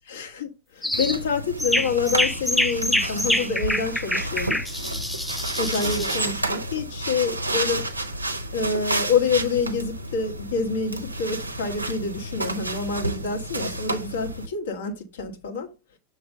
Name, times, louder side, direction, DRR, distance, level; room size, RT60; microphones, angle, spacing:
voice 1, 0.1-4.6 5.6-8.1 8.5-15.7, left 5 dB, 60° left, 1.5 m, -27 dB
sound 1, 0.8-1.2 1.6-6.3, left 1 dB, ahead, 0.4 m, -26 dB
sound 2, 0.9-14.5, right 1 dB, 80° right, 0.9 m, -31 dB
7.0 x 3.2 x 5.3 m
figure-of-eight pair, 90°, 0 cm